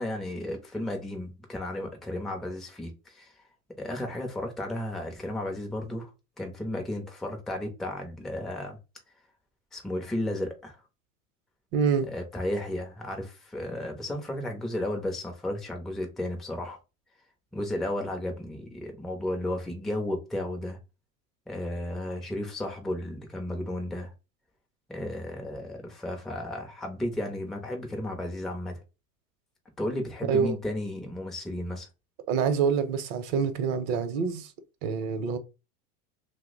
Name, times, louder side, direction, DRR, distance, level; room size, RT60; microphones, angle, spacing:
voice 1, 0.0-3.3 3.8-6.1 6.4-8.8 9.7-10.8 12.1-16.8 17.5-20.8 21.5-24.1 24.9-28.8 29.8-31.9, left 1 dB, ahead, 0.4 m, -33 dB
voice 2, 11.7-12.1 30.3-30.6 32.3-34.5 34.8-35.4, right 6 dB, 55° right, 0.7 m, -26 dB
2.8 x 2.1 x 3.8 m
hypercardioid pair, 110°, 46 cm